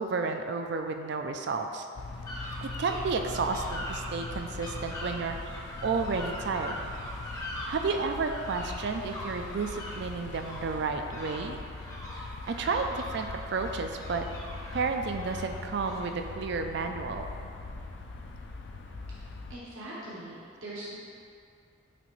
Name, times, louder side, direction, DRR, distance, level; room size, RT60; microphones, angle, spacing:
voice 1, 0.0-1.9 2.6-6.7 7.6-11.6 12.1-14.2 14.7-17.2, right 4 dB, 55° right, 6 dB, 0.4 m, -32 dB
sound 1, 2.0-19.6, left 3 dB, 60° left, 0.4 m, -41 dB
sound 2, 2.2-16.3, equal, 15° left, 0.7 m, -42 dB
voice 2, 19.1-20.9, right 1 dB, 80° right, -7 dB, 1.2 m, -42 dB
9.1 x 3.3 x 3.1 m, 2.5 s
head